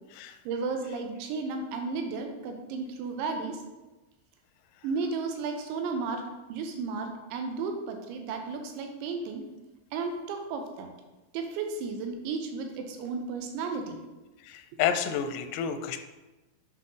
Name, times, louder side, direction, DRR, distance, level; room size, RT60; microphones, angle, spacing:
voice 1, 0.5-3.6 4.8-9.4 9.9-10.9 11.3-14.0, right 4 dB, 80° right, 4 dB, 2.9 m, -33 dB
voice 2, 14.5-16.0, left 8 dB, 85° left, 7 dB, 2.5 m, -30 dB
7.8 x 5.7 x 3.8 m, 1.1 s
omnidirectional pair, 5.5 m